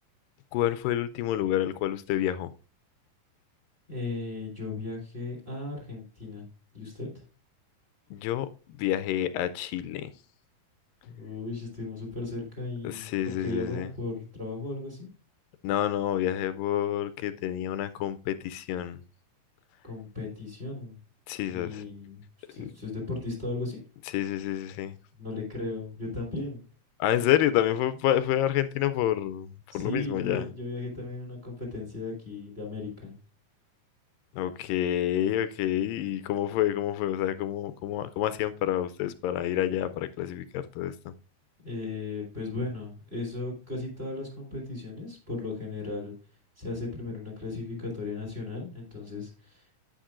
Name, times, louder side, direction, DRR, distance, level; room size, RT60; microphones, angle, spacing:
voice 1, 0.5-2.5 8.1-8.5 8.8-10.1 12.8-13.9 15.6-19.0 21.3-21.8 22.6-22.7 24.1-25.0 27.0-29.5 29.7-30.5 34.3-41.1, left 12 dB, 85° left, 2.2 m, -28 dB
voice 2, 3.9-6.5 6.7-7.2 11.0-15.1 19.8-21.0 21.5-22.2 22.5-23.8 25.2-26.6 29.7-33.2 41.6-46.1 46.6-49.8, left 3 dB, 15° right, 3.3 m, -36 dB
10.0 x 9.2 x 2.5 m
omnidirectional pair, 4.0 m